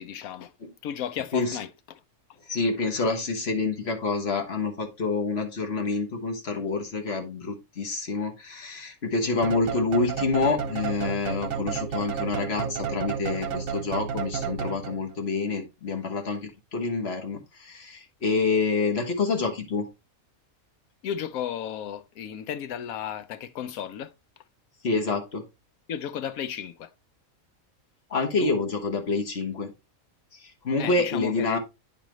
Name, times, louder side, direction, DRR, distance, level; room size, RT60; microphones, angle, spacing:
voice 1, 0.0-0.5 0.8-1.7 21.0-24.1 25.9-26.9 28.4-28.5 30.8-31.6, left 9 dB, 80° left, 1.1 m, -34 dB
voice 2, 2.5-19.9 24.8-25.4 28.1-29.7 30.4-31.6, left 3 dB, 45° left, 1.4 m, -27 dB
sound 1, 9.4-15.2, right 6 dB, 65° right, 1.2 m, -31 dB
9.0 x 5.2 x 3.0 m
omnidirectional pair, 1.5 m